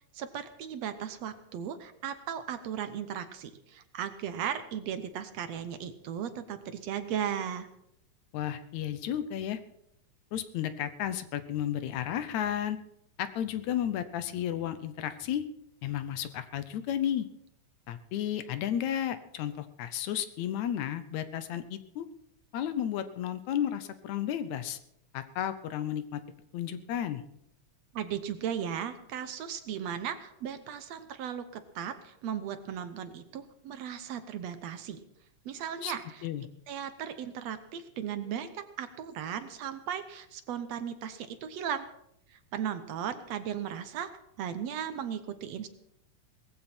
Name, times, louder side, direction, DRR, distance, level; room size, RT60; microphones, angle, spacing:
voice 1, 0.1-7.7 27.9-35.0 35.5-36.3 36.7-41.9 42.3-44.1 44.4-45.7, right 8 dB, 70° right, 10 dB, 1.9 m, -36 dB
voice 2, 8.3-9.6 10.3-12.8 13.2-15.4 15.8-17.3 17.9-22.1 22.5-24.8 25.1-26.2 26.5-27.2 35.8-35.9 36.2-36.5, left 10 dB, 75° left, 12 dB, 2.1 m, -33 dB
18.5 x 14.5 x 4.4 m, 0.78 s
omnidirectional pair, 3.4 m